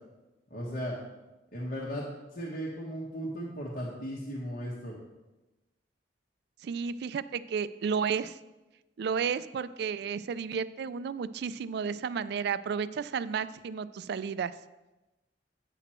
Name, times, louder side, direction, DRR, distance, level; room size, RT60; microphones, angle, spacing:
voice 1, 0.5-1.0 1.5-2.0 2.3-5.0, equal, 55° left, -5 dB, 1.3 m, -36 dB
voice 2, 6.6-8.4 9.0-14.5, right 6 dB, 60° right, 15 dB, 0.3 m, -32 dB
9.0 x 5.9 x 4.4 m, 1.1 s
head